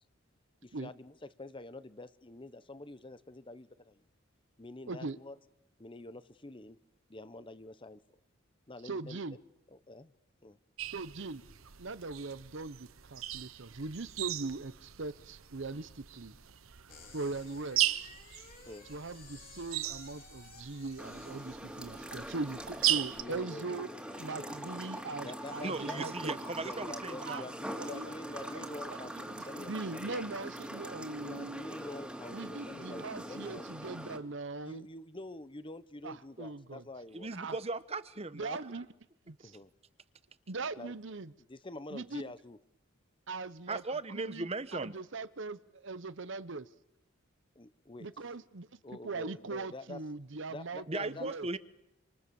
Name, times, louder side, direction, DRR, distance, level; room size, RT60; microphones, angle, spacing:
voice 1, 0.6-4.0 4.6-5.4 5.8-6.8 7.1-8.0 8.7-9.4 9.7-10.1 10.4-10.6 18.7-18.9 23.2-24.8 25.2-26.0 26.6-30.2 31.2-33.8 34.6-37.3 39.4-39.7 40.8-40.9 41.5-42.6 47.5-48.1 48.8-50.0 50.5-51.3, left 2 dB, 25° left, 0.9 m, -47 dB
voice 2, 8.8-9.4 10.9-11.4 11.8-16.3 17.1-18.1 18.9-23.9 24.2-26.4 27.2-27.4 27.8-29.0 29.6-31.6 32.3-34.9 36.0-36.8 37.3-37.6 38.3-38.9 39.3-39.5 40.5-41.3 41.9-42.3 43.3-43.8 44.1-46.7 48.0-51.5, right 3 dB, 60° right, 0.9 m, -40 dB
sound 1, 10.8-23.2, right 13 dB, 90° right, 1.0 m, -38 dB
sound 2, 16.9-26.9, left 5 dB, 45° left, 4.5 m, -58 dB
sound 3, 21.0-34.2, right 1 dB, 5° right, 2.5 m, -43 dB
voice 3, 25.6-27.4 37.1-38.6 43.7-44.9 50.9-51.6, right 3 dB, 30° right, 1.0 m, -37 dB
27.0 x 26.5 x 7.0 m
head